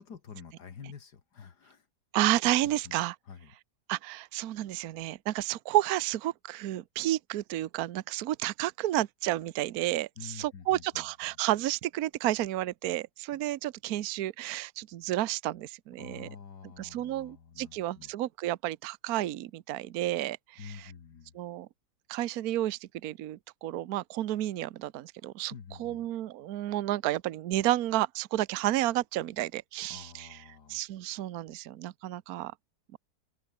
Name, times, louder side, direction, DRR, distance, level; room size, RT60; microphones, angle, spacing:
voice 1, 0.0-1.9 2.6-3.5 10.2-11.1 13.3-13.4 16.0-18.1 20.6-21.3 25.5-26.1 29.9-30.8, left 7 dB, 70° left, 2.3 m, -48 dB
voice 2, 2.1-3.1 3.9-16.3 16.8-20.9 21.3-21.7 22.1-25.5 25.8-30.4 30.7-32.5 32.9-33.0, right 14 dB, 65° right, 1.2 m, -31 dB
open air
omnidirectional pair, 1.8 m